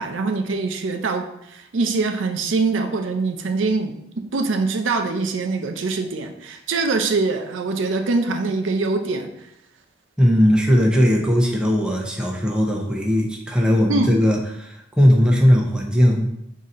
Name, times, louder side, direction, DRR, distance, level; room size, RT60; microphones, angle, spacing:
voice 1, 0.0-9.3 13.9-14.1, right 3 dB, 85° right, 5 dB, 0.5 m, -23 dB
voice 2, 10.2-16.3, equal, 5° right, -1 dB, 0.6 m, -18 dB
3.8 x 2.8 x 4.1 m, 0.77 s
head